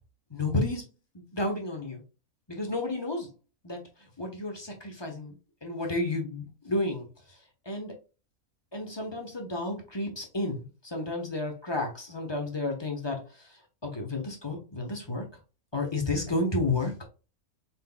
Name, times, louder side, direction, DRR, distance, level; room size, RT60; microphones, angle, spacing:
voice 1, 0.3-0.8 1.1-2.0 2.5-3.3 3.6-3.8 4.2-7.1 7.7-8.0 8.7-13.2 13.8-15.2 15.7-17.0, left 2 dB, 20° left, 2 dB, 1.0 m, -31 dB
4.4 x 4.4 x 2.2 m, 0.32 s
omnidirectional pair, 1.6 m